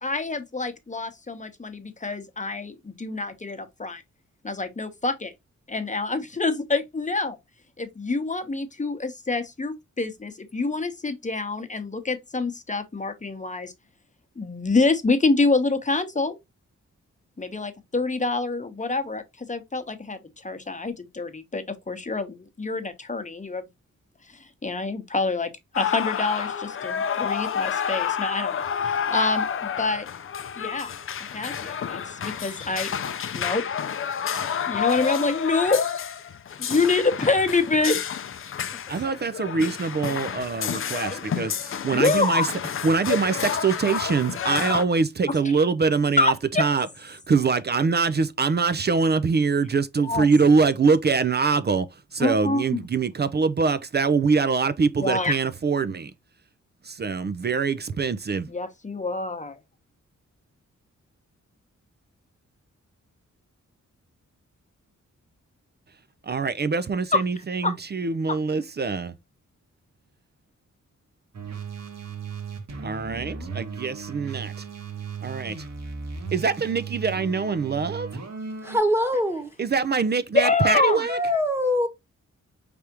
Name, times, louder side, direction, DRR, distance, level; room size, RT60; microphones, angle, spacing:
voice 1, 0.0-4.0 4.4-5.3 5.7-7.4 7.8-13.7 14.4-16.4 17.4-23.7 24.3-25.5 25.8-30.1 30.6-30.9 31.3-32.9 33.3-33.7 34.7-35.8 36.7-38.1 39.0-39.1 41.0-41.3 41.9-42.5 46.2-46.7 50.0-50.3 52.2-52.8 55.0-55.4 58.5-59.6 67.1-67.2 67.6-67.7 80.3-81.2, left 3 dB, 25° left, 0.9 m, -26 dB
sound 1, 25.7-44.8, left 7 dB, 45° left, 0.5 m, -29 dB
voice 2, 38.9-42.5 42.8-46.9 47.1-51.9 52.1-56.1 56.8-58.5 66.2-69.1 72.8-74.5 75.2-75.7 76.3-78.1 79.6-81.2, right 4 dB, 35° right, 0.4 m, -24 dB
sound 2, 71.3-78.8, right 5 dB, 65° right, 1.4 m, -36 dB
voice 3, 78.6-79.5 81.1-81.9, left 1 dB, 10° right, 1.1 m, -23 dB
4.9 x 3.4 x 2.9 m
wide cardioid pair, 100°, 29 cm